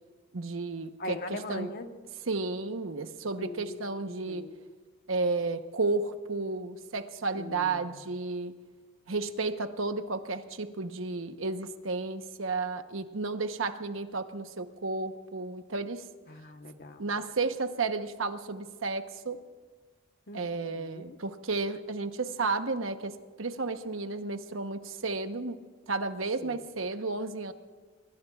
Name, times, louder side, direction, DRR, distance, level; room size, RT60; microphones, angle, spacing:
voice 1, 0.3-1.7 2.3-4.4 5.1-8.5 9.1-16.0 17.0-19.4 20.3-25.6 25.9-27.5, right 3 dB, 80° right, 8 dB, 1.0 m, -32 dB
voice 2, 1.0-1.9 3.4-4.5 7.4-7.9 16.3-17.1 20.3-21.2 26.4-26.6, left 2 dB, 50° left, 6 dB, 1.2 m, -41 dB
24.0 x 22.5 x 2.4 m, 1.5 s
head